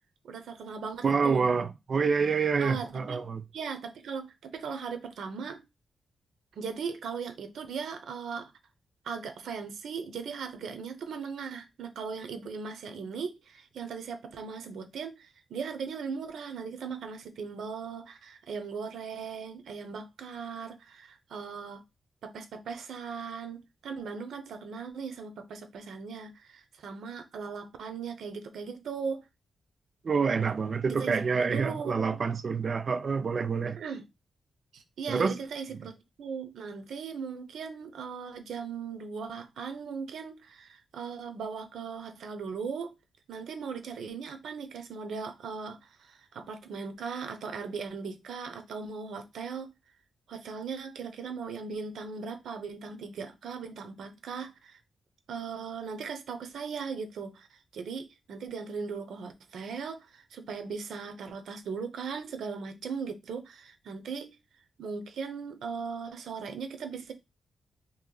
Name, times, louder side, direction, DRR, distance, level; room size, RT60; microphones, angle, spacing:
voice 1, 0.2-1.5 2.6-3.2 3.5-5.6 6.6-8.5 9.0-21.8 22.2-29.2 30.9-32.2 33.8-34.0 34.7-42.9 43.3-49.7 50.3-54.8 55.3-64.3 64.8-67.1, right 5 dB, 80° right, 0.7 m, -38 dB
voice 2, 1.0-3.4 30.0-33.8 35.1-35.4, right 5 dB, 35° right, 0.3 m, -27 dB
3.0 x 2.9 x 3.8 m
wide cardioid pair, 175°, 0 cm